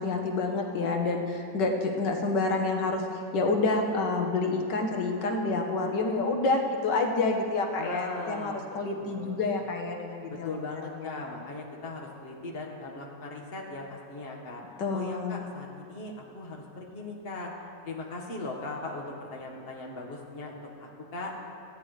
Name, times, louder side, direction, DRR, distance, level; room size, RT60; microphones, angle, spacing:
voice 1, 0.0-11.2 14.8-15.4, left 3 dB, 90° left, 2 dB, 1.8 m, -28 dB
voice 2, 7.8-8.6 8.9-9.4 10.3-14.6 14.9-17.5 17.8-21.3, left 2 dB, 35° left, 0 dB, 1.7 m, -39 dB
19.0 x 14.5 x 3.3 m, 2.4 s
omnidirectional pair, 1.8 m